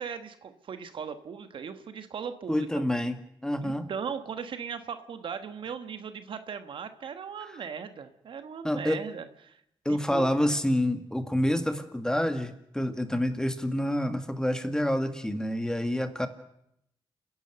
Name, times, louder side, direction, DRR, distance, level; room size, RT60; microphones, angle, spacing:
voice 1, 0.0-2.8 3.6-9.6 9.9-10.4, right 6 dB, 70° right, 10 dB, 1.4 m, -38 dB
voice 2, 2.5-3.2 3.4-3.9 8.6-9.0 9.9-16.3, left 1 dB, 5° left, 8 dB, 2.0 m, -27 dB
29.5 x 11.0 x 7.9 m, 0.76 s
cardioid pair, 70°, 9 cm